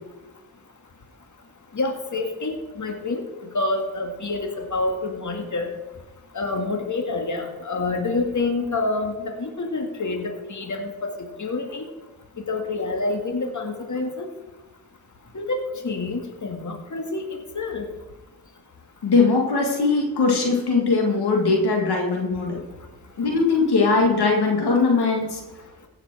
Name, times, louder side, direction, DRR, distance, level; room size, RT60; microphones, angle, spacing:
voice 1, 1.7-3.2 3.5-5.7 6.3-11.8 12.4-14.3 15.3-17.9, left 3 dB, 50° left, 4 dB, 1.9 m, -27 dB
voice 2, 19.0-22.6 23.2-25.4, left 4 dB, 90° left, 0 dB, 1.9 m, -20 dB
15.5 x 5.8 x 6.0 m, 1.1 s
cardioid pair, 40°, 38 cm